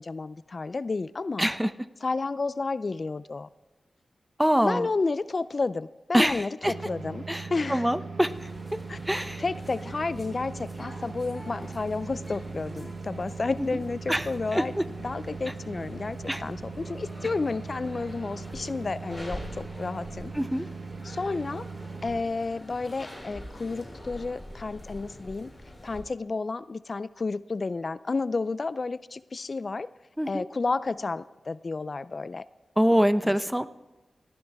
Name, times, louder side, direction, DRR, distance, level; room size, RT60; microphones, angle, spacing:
voice 1, 0.0-1.5 2.0-3.5 4.6-7.2 7.5-7.9 8.9-14.7 15.0-20.3 21.0-21.7 22.0-25.5 25.8-29.9 30.3-32.4, left 3 dB, 50° left, 16 dB, 0.3 m, -31 dB
voice 2, 1.4-1.7 4.4-4.9 6.1-6.7 7.3-8.5 9.1-9.4 13.6-13.7 14.1-14.8 16.3-16.4 20.3-20.7 30.2-30.5 32.8-33.7, equal, 5° right, 13 dB, 0.6 m, -25 dB
sound 1, 6.6-22.2, right 4 dB, 70° right, 1.0 m, -40 dB
sound 2, 8.3-26.0, left 1 dB, 15° left, 5.9 m, -45 dB
18.5 x 14.0 x 3.4 m, 1.1 s
wide cardioid pair, 70°, 0 cm